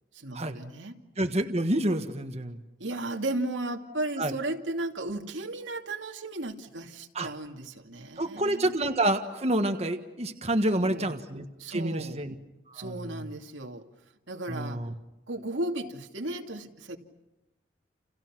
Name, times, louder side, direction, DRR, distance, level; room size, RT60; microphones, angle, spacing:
voice 1, 0.1-1.0 2.8-8.8 10.7-11.1 11.6-12.2 12.7-13.8 14.3-14.8 15.3-17.0, right 2 dB, 85° right, 3 dB, 2.5 m, -35 dB
voice 2, 1.2-2.6 4.2-4.3 7.1-7.3 8.2-11.4 11.7-12.3 12.7-12.9 14.5-14.9, right 1 dB, 35° right, 5 dB, 1.5 m, -28 dB
30.0 x 29.0 x 6.1 m, 0.98 s
head